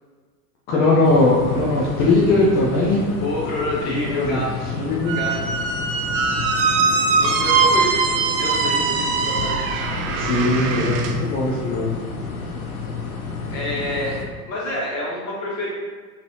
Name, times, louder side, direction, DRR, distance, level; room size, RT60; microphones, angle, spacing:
voice 1, 0.7-3.0 3.8-4.4 4.7-5.1 10.2-12.0, left 2 dB, 20° left, -5 dB, 0.4 m, -19 dB
sound 1, 1.0-14.3, left 4 dB, 60° left, 0.7 m, -31 dB
voice 2, 3.2-4.7 5.0-5.5 7.2-9.6 13.5-14.2 14.5-15.7, left 1 dB, 40° left, -6 dB, 1.5 m, -27 dB
Squeak, 5.1-11.1, right 4 dB, 40° right, 0.4 m, -21 dB
3.6 x 3.1 x 2.9 m, 1.5 s
figure-of-eight pair, 85°, 47 cm